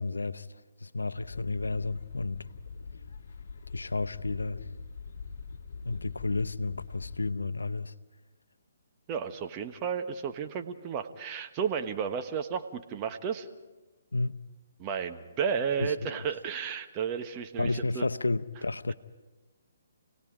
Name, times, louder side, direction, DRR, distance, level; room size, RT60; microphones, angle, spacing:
voice 1, 0.0-2.5 3.7-4.6 5.8-7.9 14.1-14.4 15.8-16.2 17.6-18.9, left 3 dB, 90° left, 0.7 m, -32 dB
sound 1, 1.2-7.3, left 5 dB, 60° left, 1.7 m, -44 dB
voice 2, 9.1-13.5 14.8-18.1, right 7 dB, 25° right, 1.3 m, -33 dB
29.0 x 18.5 x 5.1 m
hypercardioid pair, 140°, 0 cm